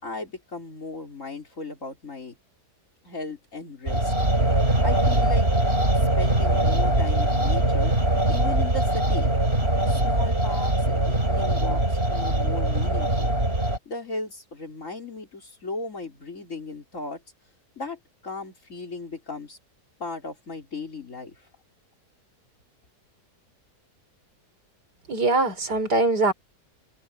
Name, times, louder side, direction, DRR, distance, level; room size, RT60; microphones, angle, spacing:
voice 1, 0.0-2.4 3.0-4.1 4.8-5.5 5.9-7.9 8.3-9.3 9.9-13.3 13.9-17.2 17.8-19.6 20.0-21.5, left 3 dB, 50° left, 4.3 m, -36 dB
sound 1, 3.9-13.8, right 1 dB, 35° right, 4.9 m, -22 dB
voice 2, 25.1-26.3, right 3 dB, 80° right, 4.6 m, -22 dB
omnidirectional pair, 1.7 m